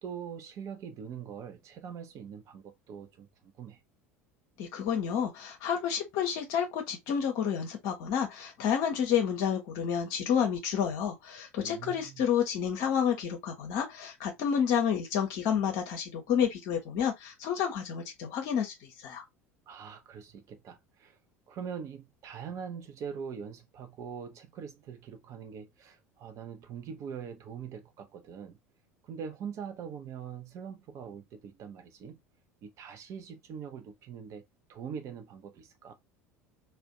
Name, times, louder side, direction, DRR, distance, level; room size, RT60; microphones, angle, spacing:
voice 1, 0.0-3.8 11.6-12.2 19.7-21.2 21.5-28.6 29.0-32.2 32.6-35.9, right 7 dB, 40° right, 0.7 m, -43 dB
voice 2, 4.6-19.2, left 8 dB, 50° left, 0.7 m, -30 dB
2.5 x 2.1 x 3.7 m
figure-of-eight pair, 70°, 8 cm